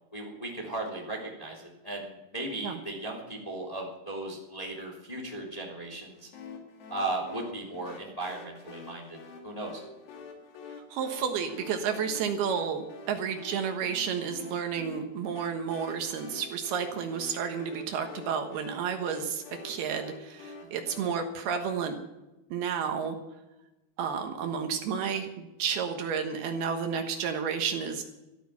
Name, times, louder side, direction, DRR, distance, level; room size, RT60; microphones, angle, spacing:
voice 1, 0.1-6.3 6.9-9.2 9.4-9.8 20.6-20.8, right 2 dB, 10° left, 0 dB, 2.4 m, -36 dB
sound 1, 6.3-21.1, left 4 dB, 75° left, 4.3 m, -47 dB
voice 2, 10.9-22.0 22.5-23.2 24.0-28.0, right 7 dB, 70° right, 5 dB, 3.1 m, -31 dB
14.5 x 13.0 x 5.9 m, 0.97 s
omnidirectional pair, 4.8 m